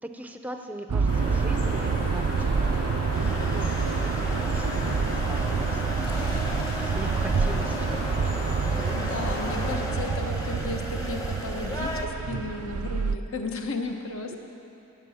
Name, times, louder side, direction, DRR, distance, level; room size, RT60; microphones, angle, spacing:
voice 1, 0.0-6.4 6.7-8.2 8.5-9.0 14.3-14.4, right 1 dB, 5° right, 5 dB, 0.6 m, -41 dB
sound 1, 0.9-13.2, right 5 dB, 90° right, 0.4 m, -27 dB
sound 2, 1.1-9.8, equal, 40° left, 2.7 m, -35 dB
sound 3, 3.1-12.1, left 1 dB, 15° left, 1.0 m, -36 dB
voice 2, 8.7-14.4, left 3 dB, 65° left, 4 dB, 1.1 m, -34 dB
17.5 x 7.6 x 7.1 m, 2.8 s
head